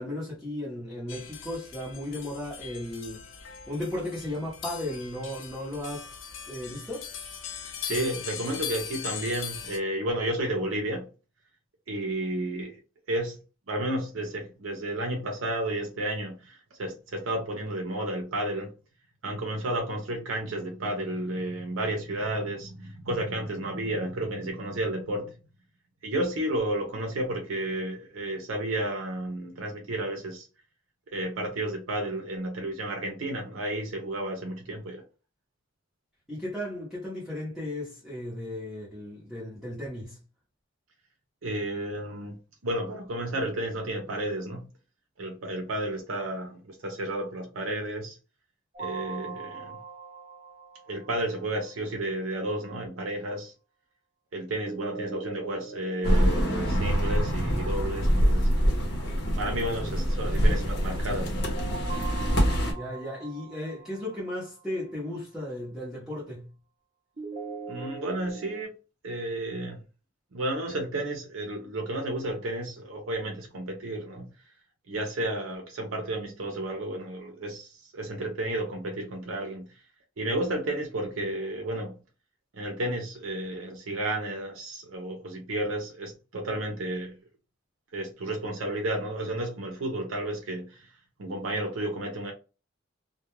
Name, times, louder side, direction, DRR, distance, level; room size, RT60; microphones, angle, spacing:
voice 1, 0.0-3.2 3.7-6.2 6.5-7.1 36.3-40.2 62.7-66.5, left 1 dB, ahead, 0.8 m, -35 dB
sound 1, 1.1-9.8, left 8 dB, 70° left, 0.5 m, -40 dB
voice 2, 7.5-11.1 11.9-12.8 13.1-13.4 13.7-18.7 19.2-25.4 26.0-30.5 31.1-35.0 41.4-42.4 42.6-44.7 45.2-48.2 48.8-49.8 50.9-53.5 54.3-58.5 59.4-61.5 67.7-68.7 69.0-69.8 70.3-74.3 74.9-79.7 80.2-82.0 82.5-87.2 87.9-90.9 91.2-92.3, right 1 dB, 80° right, 0.6 m, -32 dB
sound 2, 48.7-51.7 54.6-57.7 61.4-64.6 67.2-68.6, right 5 dB, 40° right, 0.8 m, -41 dB
sound 3, 56.0-62.7, equal, 55° left, 0.9 m, -25 dB
2.3 x 2.1 x 3.0 m
head